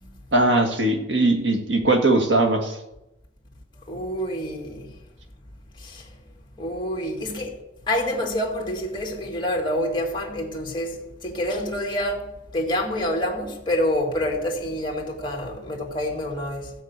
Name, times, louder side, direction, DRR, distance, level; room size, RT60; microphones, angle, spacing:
voice 1, 0.3-2.7, right 2 dB, 65° right, 1.8 m, -20 dB
voice 2, 3.9-5.0 5.8-6.1 6.6-16.7, left 1 dB, 25° left, 2.4 m, -27 dB
15.5 x 5.8 x 8.2 m
head